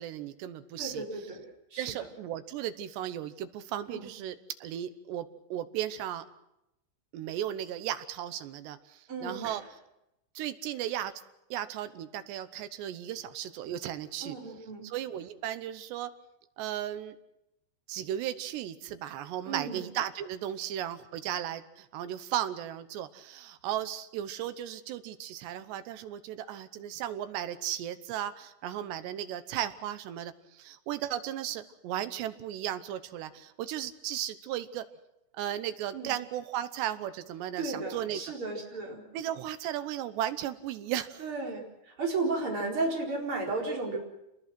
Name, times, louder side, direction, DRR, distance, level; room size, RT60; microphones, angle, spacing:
voice 1, 0.0-1.0 1.8-4.4 4.6-6.3 7.1-9.6 10.4-11.1 11.5-14.4 14.8-16.1 16.6-17.2 17.9-34.8 35.3-38.3 39.1-41.2, right 11 dB, 75° right, 11 dB, 3.0 m, -35 dB
voice 2, 0.8-1.4 1.7-2.1 3.9-4.1 9.1-9.6 14.2-14.9 19.4-19.9 35.9-36.1 37.6-39.0 41.2-44.0, right 3 dB, 30° right, -1 dB, 4.8 m, -34 dB
28.0 x 20.0 x 6.2 m, 0.87 s
omnidirectional pair, 5.3 m